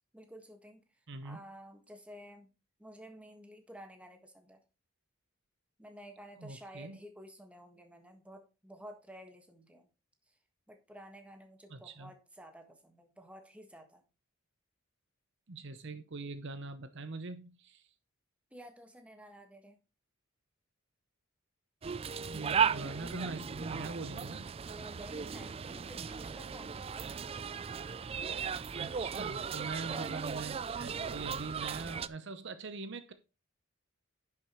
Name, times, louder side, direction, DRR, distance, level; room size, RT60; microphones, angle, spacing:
voice 1, 0.1-2.5 2.8-4.6 5.8-9.9 10.3-10.4 10.7-14.0 18.5-19.8 24.7-27.1, equal, 5° right, 1.5 m, -52 dB
voice 2, 1.1-1.4 6.4-7.0 11.7-12.1 15.5-17.9 22.3-24.5 28.7-33.1, right 3 dB, 55° right, 0.8 m, -42 dB
sound 1, 21.8-32.1, right 6 dB, 25° right, 0.3 m, -36 dB
10.5 x 7.2 x 3.1 m
head